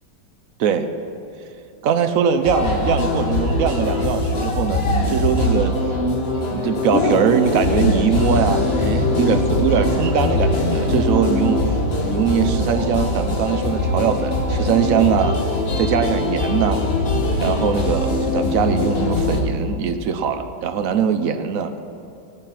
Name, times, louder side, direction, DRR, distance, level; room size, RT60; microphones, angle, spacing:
voice 1, 1.8-5.7 6.5-11.6 12.0-16.8 17.4-21.8, right 7 dB, 75° right, 8 dB, 0.7 m, -21 dB
sound 1, 2.4-19.4, left 2 dB, 35° left, 1.4 m, -21 dB
17.5 x 8.9 x 5.8 m, 2.8 s
omnidirectional pair, 2.2 m